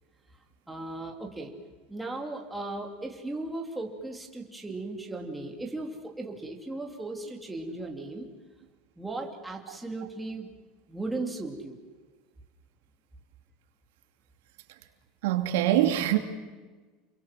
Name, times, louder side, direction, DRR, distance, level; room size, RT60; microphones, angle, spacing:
voice 1, 0.7-1.5 1.9-8.3 9.0-10.5 10.9-11.8, right 2 dB, 5° right, 1 dB, 3.2 m, -36 dB
voice 2, 15.2-16.2, right 12 dB, 85° right, 5 dB, 2.8 m, -23 dB
29.5 x 22.5 x 7.7 m, 1.3 s
supercardioid pair, 155°, 0 cm